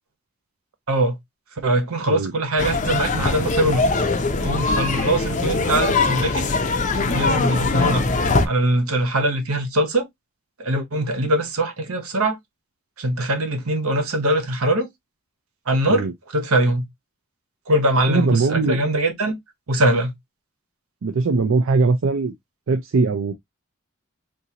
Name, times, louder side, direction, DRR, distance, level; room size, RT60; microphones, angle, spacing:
voice 1, 1.6-3.9 4.4-6.5 7.1-8.1 8.4-10.1 10.6-12.4 13.0-14.9 15.7-16.1 16.3-16.9 17.7-19.3 19.7-20.1, right 1 dB, 85° right, 1.1 m, -22 dB
sound 1, 2.6-8.5, left 3 dB, 35° left, 0.5 m, -22 dB
voice 2, 18.1-18.8 21.0-22.3 22.7-23.3, right 4 dB, 65° right, 0.5 m, -20 dB
3.8 x 2.7 x 2.8 m
head